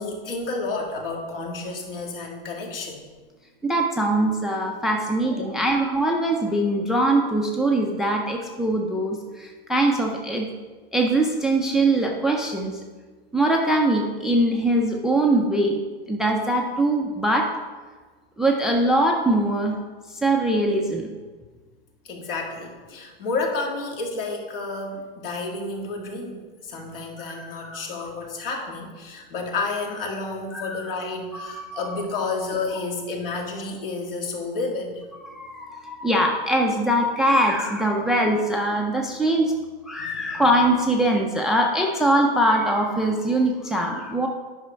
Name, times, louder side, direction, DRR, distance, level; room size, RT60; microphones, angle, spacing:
voice 1, 0.0-3.0 5.3-5.7 22.0-26.4 26.6-35.0 40.0-40.4, left 3 dB, 70° left, 1 dB, 2.2 m, -31 dB
voice 2, 3.6-10.5 10.9-12.8 13.3-15.8 16.1-17.5 18.4-19.8 20.2-21.1 27.3-27.8 30.5-30.8 31.3-31.8 32.2-32.3 35.3-39.5 39.9-44.3, right 1 dB, ahead, 1 dB, 0.3 m, -22 dB
9.6 x 5.5 x 5.1 m, 1.4 s
hypercardioid pair, 140°, 30 cm